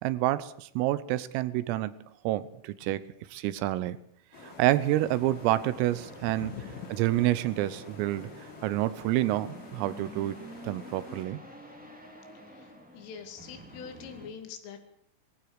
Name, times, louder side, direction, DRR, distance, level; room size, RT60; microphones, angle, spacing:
voice 1, 0.0-1.9 2.3-3.0 3.3-4.0 4.4-6.5 6.9-8.3 8.6-10.4 10.6-11.4, right 15 dB, 85° right, 16 dB, 3.6 m, -28 dB
sound 1, 4.3-11.3, left 3 dB, 45° left, 6.8 m, -49 dB
sound 2, 4.9-14.3, equal, 5° right, 1.4 m, -49 dB
voice 2, 12.9-14.8, left 7 dB, 75° left, 7 dB, 4.6 m, -43 dB
21.0 x 16.0 x 7.9 m, 0.67 s
omnidirectional pair, 5.9 m